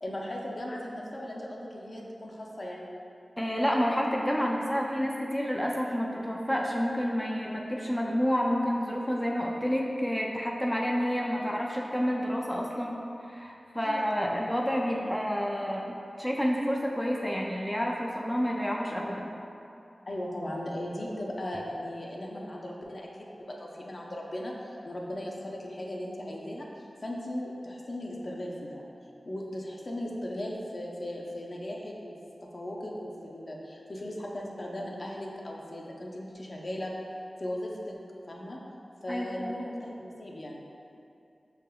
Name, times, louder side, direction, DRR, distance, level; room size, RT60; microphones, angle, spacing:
voice 1, 0.0-2.9 13.8-14.4 14.9-15.1 20.1-28.8 29.3-36.9 37.4-38.0 38.3-38.6 39.0-40.6, left 1 dB, 50° left, -2 dB, 0.6 m, -37 dB
voice 2, 3.4-13.0 13.2-15.9 16.2-19.3 39.1-39.6, equal, 5° left, -2 dB, 0.4 m, -29 dB
5.6 x 3.5 x 2.2 m, 2.7 s
wide cardioid pair, 75°, 0 cm